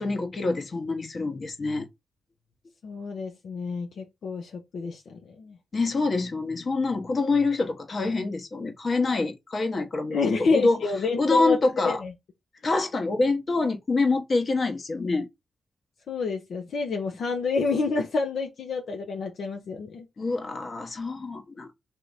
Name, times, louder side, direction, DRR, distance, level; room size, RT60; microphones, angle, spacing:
voice 1, 0.0-1.9 5.7-10.8 11.2-12.0 12.6-15.3 20.2-21.7, left 3 dB, 50° left, 1.1 m, -26 dB
voice 2, 2.8-5.6 10.1-11.6 11.8-12.1 16.1-20.1, left 4 dB, 75° left, 0.7 m, -28 dB
3.4 x 2.8 x 4.0 m
cardioid pair, 60°, 0 cm